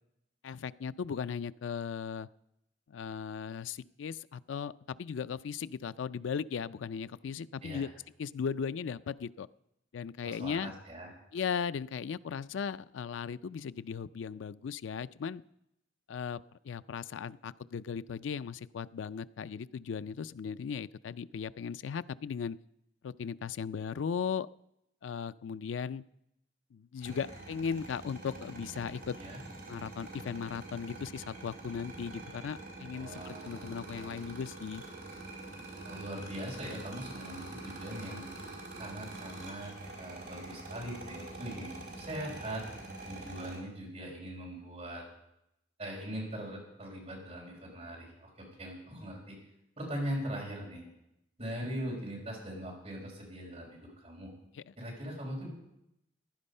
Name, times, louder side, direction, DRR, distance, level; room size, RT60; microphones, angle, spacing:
voice 1, 0.4-2.3 2.9-7.9 8.2-9.5 9.9-10.7 11.3-15.4 16.1-22.6 23.0-24.5 25.0-26.0 26.7-29.2 29.7-34.8 54.5-54.7, left 6 dB, 90° left, 15 dB, 0.4 m, -37 dB
voice 2, 10.2-11.1 29.2-29.4 32.9-33.7 33.9-34.3 35.8-38.3 38.8-42.6 43.1-45.0 45.8-49.4 49.8-50.9 51.4-54.3 54.8-55.5, equal, 35° right, -2 dB, 5.2 m, -41 dB
sound 1, 27.0-43.6, right 2 dB, 55° right, 5.1 m, -45 dB
15.5 x 10.5 x 5.4 m, 0.83 s
head